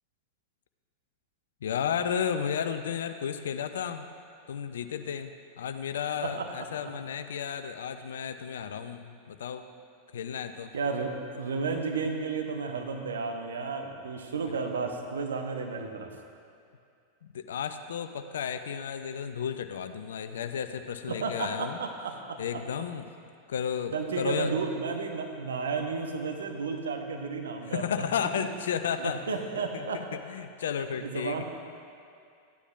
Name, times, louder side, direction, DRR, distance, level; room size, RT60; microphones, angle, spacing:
voice 1, 1.6-4.1 4.5-9.6 10.1-10.7 17.2-21.8 22.4-23.0 23.5-24.6 27.7-29.2 29.7-31.4, left 8 dB, 60° left, 8 dB, 0.4 m, -33 dB
voice 2, 6.2-6.7 10.7-16.1 21.1-22.6 23.9-28.6 29.0-30.0 31.0-31.4, right 4 dB, 65° right, 3 dB, 0.8 m, -33 dB
14.0 x 9.6 x 2.4 m, 2.4 s
figure-of-eight pair, 90°, 0 cm